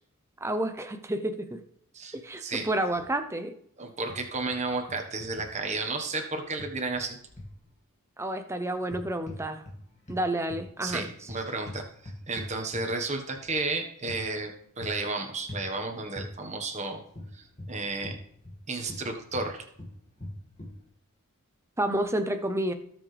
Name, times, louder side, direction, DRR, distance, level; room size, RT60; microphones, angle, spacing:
voice 1, 0.4-1.6 2.1-3.5 8.2-9.6 10.1-11.1 21.8-22.7, right 1 dB, 10° right, 7 dB, 0.7 m, -30 dB
voice 2, 3.8-7.2 10.8-17.0 17.3-18.2 18.7-19.6, right 3 dB, 30° right, 3 dB, 1.4 m, -33 dB
sound 1, 4.1-4.6 4.9-5.3 6.6-7.6 8.8-9.8 10.1-13.1 14.1-14.2 14.8-15.1 15.5-15.7 16.2-16.3 17.1-18.6 18.9-20.8, left 1 dB, 30° left, 2.1 m, -42 dB
17.5 x 6.2 x 3.4 m, 0.68 s
head